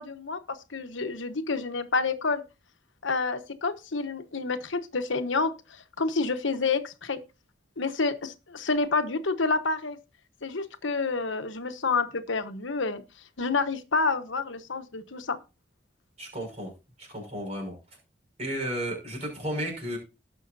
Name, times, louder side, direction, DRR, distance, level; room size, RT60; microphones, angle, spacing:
voice 1, 0.0-2.4 3.0-7.2 7.8-10.0 10.4-13.0 13.4-15.4, left 4 dB, 90° left, 1.1 m, -29 dB
voice 2, 16.2-16.7 17.0-17.7 18.4-20.0, equal, 35° right, 5.8 m, -33 dB
19.0 x 6.4 x 2.6 m
head